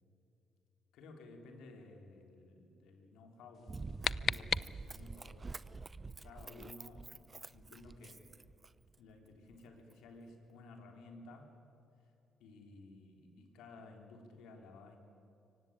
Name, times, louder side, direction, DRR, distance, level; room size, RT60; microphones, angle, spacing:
voice 1, 0.9-5.6 6.0-8.3 8.9-11.6 12.4-15.0, left 2 dB, 90° left, 3 dB, 3.6 m, -55 dB
sound 1, 3.5-5.2, left 7 dB, 55° left, 0.5 m, -37 dB
Run, 3.7-8.9 9.5-9.6, right 3 dB, 30° right, 0.7 m, -46 dB
24.0 x 18.0 x 8.8 m, 2.8 s
cardioid pair, 90°, 0 cm